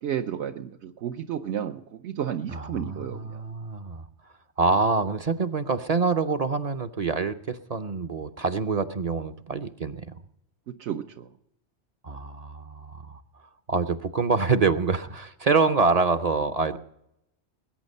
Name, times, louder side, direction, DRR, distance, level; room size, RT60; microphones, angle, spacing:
voice 1, 0.0-3.4 10.8-11.3, right 9 dB, 80° right, 5 dB, 1.0 m, -32 dB
voice 2, 2.5-4.1 4.6-10.1 12.0-13.2 13.7-16.8, right 4 dB, 45° right, 9 dB, 0.6 m, -26 dB
21.0 x 8.9 x 5.4 m, 0.80 s
omnidirectional pair, 1.2 m